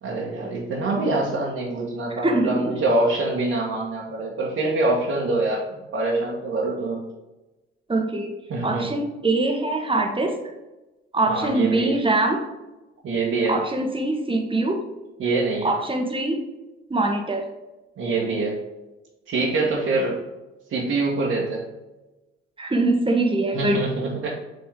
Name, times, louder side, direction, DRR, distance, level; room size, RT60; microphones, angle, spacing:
voice 1, 0.0-5.6 5.9-7.0 8.5-8.9 11.3-12.0 13.0-13.6 15.2-15.7 18.0-18.6 19.3-20.2 20.7-21.6 23.5-24.3, right 2 dB, 50° right, -6 dB, 1.5 m, -24 dB
voice 2, 2.2-2.8 7.9-8.4 8.6-10.4 11.1-12.4 13.5-14.8 15.6-16.4 16.9-17.5 22.6-23.8, right 2 dB, 15° right, 3 dB, 1.3 m, -23 dB
7.8 x 4.3 x 3.7 m, 1.1 s
figure-of-eight pair, 45°, 31 cm